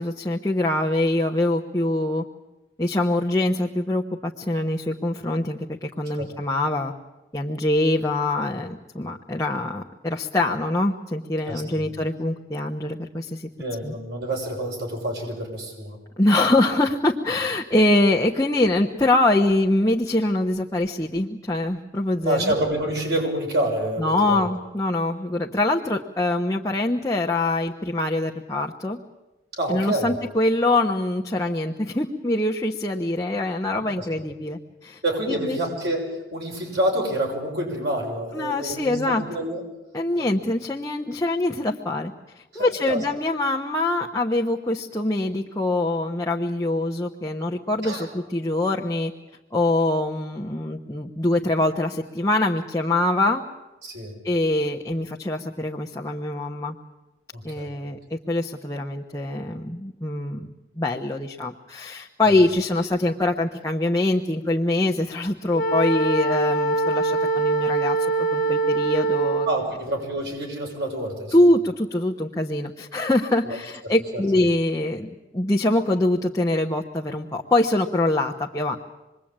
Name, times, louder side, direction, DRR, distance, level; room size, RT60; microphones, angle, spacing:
voice 1, 0.0-2.2 2.8-6.9 7.3-13.5 13.8-13.9 16.2-22.5 24.0-29.0 29.7-35.0 35.3-35.6 38.3-39.2 39.9-42.1 42.5-49.1 49.5-53.4 54.2-56.8 57.4-60.5 60.8-69.5 71.3-78.8, left 2 dB, 20° left, 0 dB, 1.1 m, -24 dB
voice 2, 11.5-11.9 13.6-16.0 22.2-24.5 29.6-30.2 34.0-34.1 35.0-39.6 40.2-40.5 42.5-43.0 47.8-48.1 53.8-54.2 57.3-57.7 62.2-62.3 69.4-71.4 73.4-73.6 73.8-74.2, right 1 dB, 70° right, 0 dB, 6.4 m, -28 dB
Wind instrument woodwind instrument, 65.5-69.7, right 3 dB, 50° left, 1.5 m, -23 dB
27.0 x 21.5 x 8.9 m, 1.0 s
head